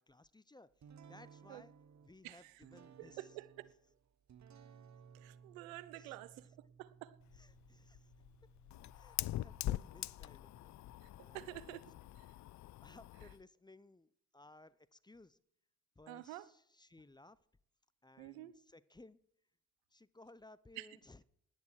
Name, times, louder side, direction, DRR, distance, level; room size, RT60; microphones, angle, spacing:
voice 1, 0.0-1.7 2.0-3.3 5.9-6.2 7.3-8.1 8.9-10.8 11.2-11.8 12.8-15.4 16.0-17.4 18.0-19.2 19.9-21.2, left 2 dB, 10° left, 17 dB, 0.7 m, -60 dB
sound 1, 0.8-12.3, right 7 dB, 45° right, 1.1 m, -62 dB
voice 2, 3.0-3.7 5.1-7.2 11.0-11.1 11.3-11.8 16.1-16.4 18.2-18.5 20.8-20.9, right 16 dB, 80° right, 18 dB, 0.6 m, -49 dB
Fire, 7.2-13.4, left 14 dB, 45° left, 0.5 m, -44 dB
17.5 x 10.5 x 4.8 m, 0.74 s
hypercardioid pair, 40°, 40 cm